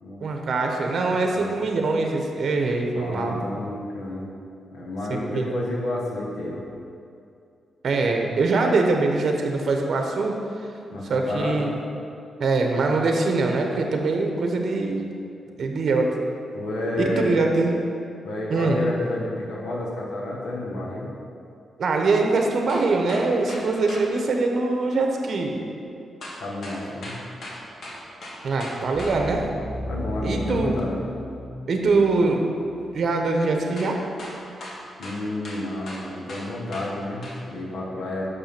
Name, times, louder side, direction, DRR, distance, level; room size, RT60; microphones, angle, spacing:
voice 1, 0.2-3.4 5.1-5.6 7.8-10.4 11.1-11.8 12.4-15.0 15.6-16.1 17.0-17.7 18.5-18.8 21.8-25.6 28.4-29.5 30.2-30.8 31.7-34.0, right 3 dB, 60° right, 2 dB, 0.9 m, -23 dB
voice 2, 2.9-4.3 4.7-6.6 10.9-11.7 16.5-17.5 18.2-21.1 26.4-27.2 29.8-31.0 35.0-38.3, left 1 dB, 85° left, -3 dB, 1.5 m, -30 dB
sound 1, 22.3-24.1 26.2-29.2 33.8-33.9 34.2-36.9 37.2-37.4, left 1 dB, 70° left, 1.8 m, -38 dB
sound 2, 28.9-33.3 33.6-33.8, left 1 dB, 30° right, 1.4 m, -35 dB
6.2 x 5.4 x 5.9 m, 2.5 s
cardioid pair, 95°, 0 cm